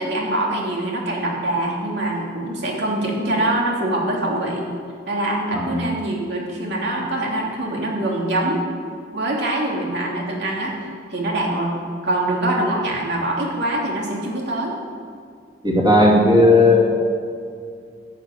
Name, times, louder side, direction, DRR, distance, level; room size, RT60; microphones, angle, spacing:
voice 1, 0.0-4.7 5.1-8.6 9.1-11.7 12.0-14.7, right 1 dB, 65° right, -2 dB, 2.7 m, -24 dB
voice 2, 15.6-16.9, left 2 dB, 25° right, -3 dB, 2.6 m, -14 dB
11.0 x 7.9 x 8.1 m, 2.3 s
head